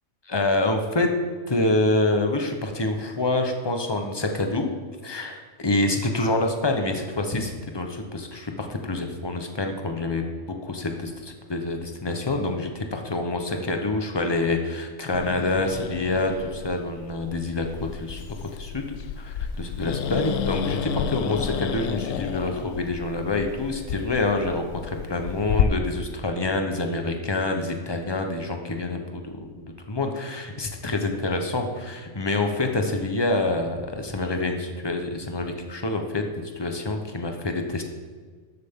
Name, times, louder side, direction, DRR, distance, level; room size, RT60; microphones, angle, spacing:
voice 1, 0.3-1.1 1.5-4.7 5.0-10.2 10.6-36.2 36.6-37.8, left 2 dB, 20° left, 4 dB, 0.8 m, -27 dB
Growling, 15.1-25.6, left 9 dB, 75° left, 0.9 m, -31 dB
12.5 x 8.0 x 3.7 m, 1.5 s
omnidirectional pair, 1.4 m